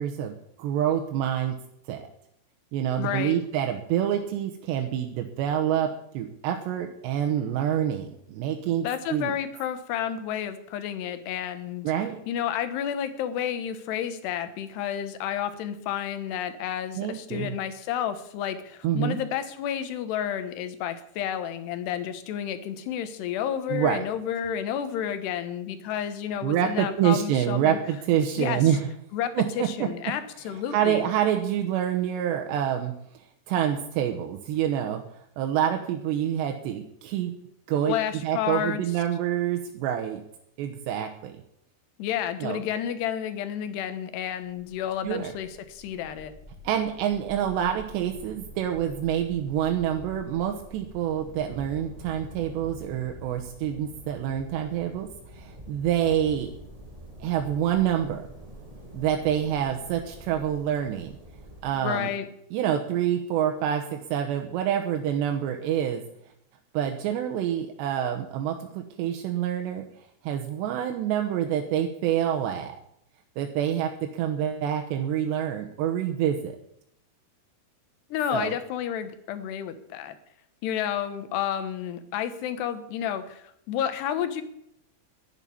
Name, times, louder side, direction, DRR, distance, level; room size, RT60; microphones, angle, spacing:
voice 1, 0.0-1.5 1.9-2.1 2.7-5.9 6.1-9.3 11.8-12.2 17.0-17.6 18.8-19.2 23.7-24.0 26.4-28.9 29.4-29.9 30.5-32.9 33.5-37.3 37.7-40.2 40.6-41.3 42.4-42.6 45.0-45.3 46.6-55.1 55.3-56.5 57.2-58.2 58.9-61.1 61.6-62.1 62.5-66.0 66.7-69.8 70.2-72.8 73.4-76.6 78.3-78.5, right 10 dB, 85° right, 4 dB, 3.2 m, -27 dB
voice 2, 3.0-3.4 8.8-11.9 12.3-27.8 28.4-28.6 29.1-31.0 37.9-38.8 42.0-46.3 61.8-62.3 78.1-80.2 80.6-84.4, left 9 dB, 80° left, 11 dB, 3.2 m, -31 dB
sound 1, 44.3-61.7, equal, 15° right, 1.4 m, -46 dB
11.0 x 9.0 x 9.8 m, 0.76 s
omnidirectional pair, 4.9 m